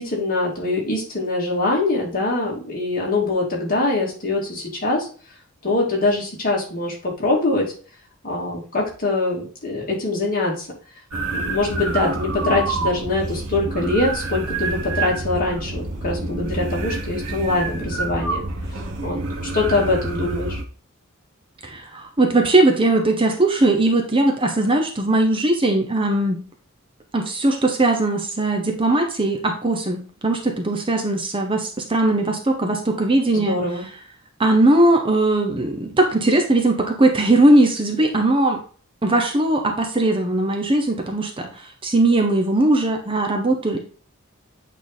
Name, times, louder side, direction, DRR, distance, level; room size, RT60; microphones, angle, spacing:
voice 1, 0.0-5.1 5.6-7.6 8.2-10.7 11.3-18.4 19.0-20.6 33.3-33.8, left 2 dB, 40° left, -3 dB, 2.6 m, -23 dB
sound 1, 11.1-20.6, right 3 dB, 85° right, 1.1 m, -28 dB
voice 2, 21.6-26.4 27.1-33.6 34.4-38.6 39.0-43.8, right 2 dB, 25° right, 3 dB, 0.8 m, -19 dB
8.7 x 3.4 x 4.0 m, 0.40 s
head